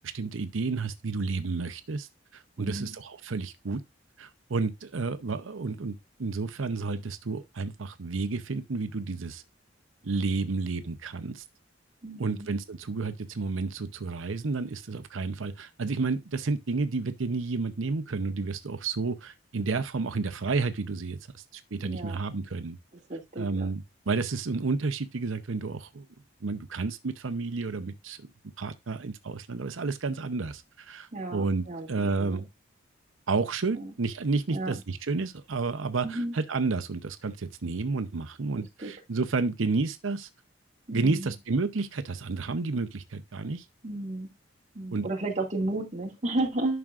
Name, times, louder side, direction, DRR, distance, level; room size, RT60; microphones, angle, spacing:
voice 1, 0.0-3.8 4.2-9.4 10.0-11.4 12.2-22.8 23.4-26.0 26.4-28.3 28.6-32.5 33.3-40.3 40.9-43.6 44.9-45.1, right 4 dB, 85° right, 0.7 m, -31 dB
voice 2, 2.6-2.9 12.0-12.5 21.7-22.2 23.1-23.7 31.1-32.4 33.7-33.9 34.5-34.7 36.0-36.3 38.6-38.9 40.9-41.3 43.8-44.3 44.7-46.8, right 2 dB, 35° right, 2.2 m, -33 dB
11.0 x 6.0 x 2.5 m
head